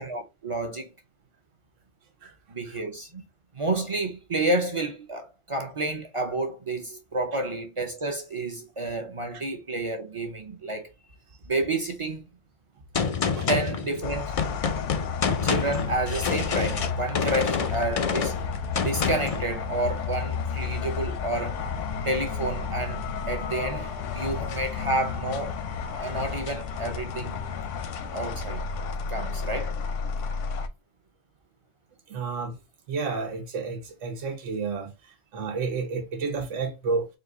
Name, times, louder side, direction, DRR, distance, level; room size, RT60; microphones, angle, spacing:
voice 1, 0.1-0.9 2.5-3.2 3.5-10.9 11.5-12.2 13.0-13.1 13.5-14.4 15.4-18.3 18.8-21.6 22.0-25.6 26.0-27.4 28.1-28.6 29.1-29.7, right 2 dB, 35° right, 0.5 m, -30 dB
Gunshot gunfire, 12.9-19.4, left 6 dB, 60° left, 0.3 m, -28 dB
sound 1, 14.0-30.7, left 5 dB, 85° left, 1.0 m, -32 dB
voice 2, 32.1-32.5 32.9-34.9 35.3-37.1, right 4 dB, 85° right, 1.3 m, -30 dB
4.1 x 2.4 x 3.7 m
omnidirectional pair, 1.2 m